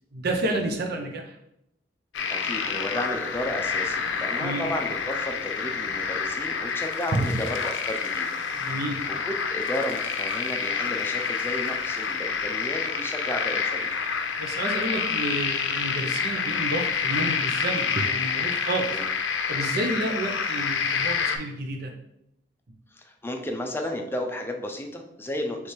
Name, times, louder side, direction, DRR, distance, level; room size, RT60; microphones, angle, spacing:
voice 1, 0.1-1.4 4.4-4.7 7.1-7.3 8.5-9.0 14.4-18.9 19.5-21.9, right 2 dB, 60° right, 3 dB, 0.7 m, -30 dB
sound 1, 2.1-21.4, left 6 dB, 85° left, 0.5 m, -28 dB
voice 2, 2.3-8.4 9.1-13.9 18.9-19.1 22.9-25.7, left 1 dB, 15° left, 3 dB, 0.5 m, -33 dB
3.3 x 3.3 x 4.3 m, 0.79 s
head